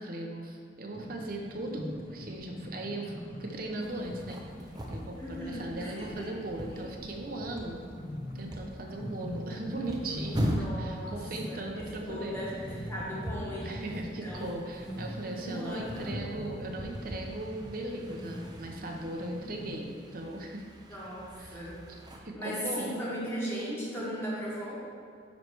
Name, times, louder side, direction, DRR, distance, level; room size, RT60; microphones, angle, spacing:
voice 1, 0.0-7.8 8.3-12.4 13.6-20.7 21.4-21.7 22.2-23.0, right 1 dB, 50° right, 1 dB, 0.8 m, -38 dB
sound 1, 0.9-19.8, equal, 45° left, 0.8 m, -43 dB
sound 2, 3.8-22.2, equal, 20° right, 0.6 m, -41 dB
voice 2, 5.2-6.3 10.3-11.2 11.4-14.5 15.4-16.2 20.8-24.9, equal, 15° left, -7 dB, 1.7 m, -38 dB
9.4 x 3.3 x 4.6 m, 2.3 s
head